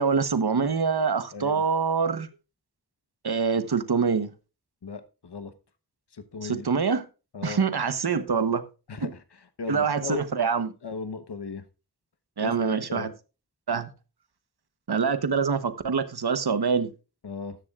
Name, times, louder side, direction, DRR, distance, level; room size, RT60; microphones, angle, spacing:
voice 1, 0.0-2.3 3.2-4.3 6.4-7.0 7.4-8.6 9.0-9.1 9.7-10.7 12.4-13.1 13.7-13.9 14.9-16.9, right 5 dB, 75° right, 1.1 m, -25 dB
voice 2, 1.3-1.6 4.8-5.5 6.1-6.7 7.3-7.6 8.9-10.2 10.8-11.6 12.4-13.1 17.2-17.6, left 4 dB, 85° left, 1.1 m, -37 dB
13.5 x 10.5 x 2.4 m
wide cardioid pair, 65°, 39 cm